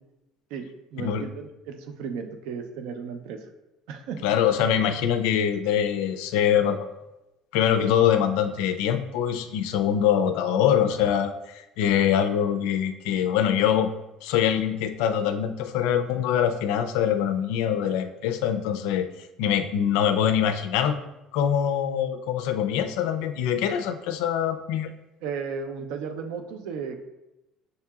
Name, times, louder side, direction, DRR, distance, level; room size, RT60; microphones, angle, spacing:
voice 1, 0.9-3.5 3.9-4.2 25.2-27.0, right 6 dB, 75° right, 6 dB, 0.5 m, -34 dB
voice 2, 4.2-6.9 7.5-13.9 14.2-19.1 19.4-21.0 21.3-24.9, left 9 dB, 85° left, 9 dB, 0.4 m, -24 dB
6.5 x 2.8 x 2.3 m, 0.92 s
cardioid pair, 160°, 0 cm